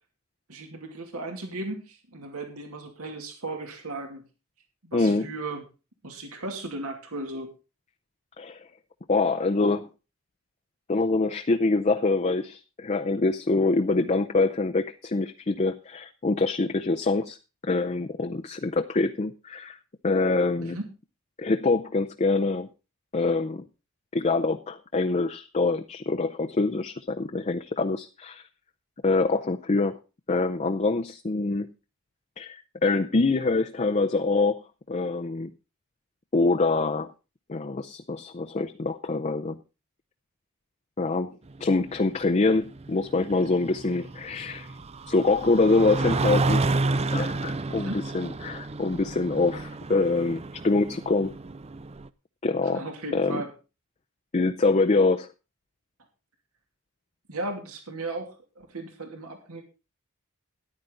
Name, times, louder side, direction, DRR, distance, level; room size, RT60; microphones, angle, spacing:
voice 1, 0.5-4.2 4.8-5.7 6.0-7.5 20.6-20.9 47.7-48.0 52.7-53.5 57.3-59.6, right 2 dB, 80° right, 4 dB, 2.5 m, -36 dB
voice 2, 4.9-5.3 8.4-8.6 9.1-9.9 10.9-17.4 17.6-19.8 20.0-20.8 21.4-22.7 23.1-23.6 24.1-28.4 29.0-30.0 30.3-31.7 32.4-34.6 34.9-35.5 36.3-37.1 37.5-39.6 41.0-41.3 41.6-44.7 45.1-46.7 47.1-51.3 52.4-52.8 53.1-53.4 54.3-55.3, left 3 dB, 30° left, 5 dB, 0.6 m, -25 dB
snowmobile pass by quick semidistant, 41.5-52.1, right 3 dB, 30° right, 0.5 m, -31 dB
13.5 x 10.5 x 3.9 m, 0.31 s
head